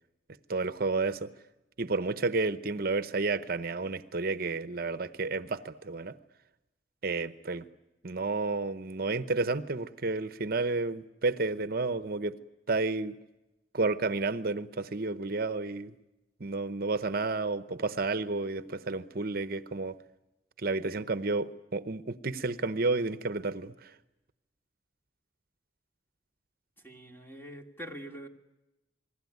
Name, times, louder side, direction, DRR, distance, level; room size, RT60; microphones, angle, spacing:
voice 1, 0.5-1.3 1.8-6.1 7.0-7.7 8.0-12.3 12.7-13.2 13.7-15.9 16.4-20.0 20.6-23.9, right 3 dB, 55° right, 13 dB, 0.9 m, -31 dB
voice 2, 26.8-28.3, equal, 10° left, 3 dB, 2.6 m, -44 dB
28.0 x 20.5 x 9.5 m, 1.0 s
head